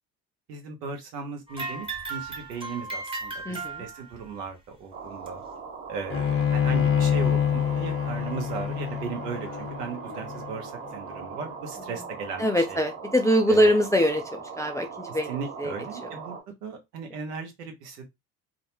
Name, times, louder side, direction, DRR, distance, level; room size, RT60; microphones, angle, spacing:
voice 1, 0.5-5.4 5.9-12.8 13.5-13.8 15.1-16.4 16.6-18.1, right 5 dB, 85° right, 0.9 m, -37 dB
sound 1, 1.5-4.3 5.3-5.4 6.2-6.3 7.2-7.3, right 3 dB, 10° right, 0.8 m, -36 dB
voice 2, 3.5-3.8 12.4-15.7, equal, 10° left, 0.3 m, -23 dB
sound 2, 4.9-16.4, right 5 dB, 60° right, 1.3 m, -40 dB
Bowed string instrument, 6.1-11.4, left 9 dB, 30° left, 0.7 m, -26 dB
2.4 x 2.1 x 2.9 m
hypercardioid pair, 60°, 47 cm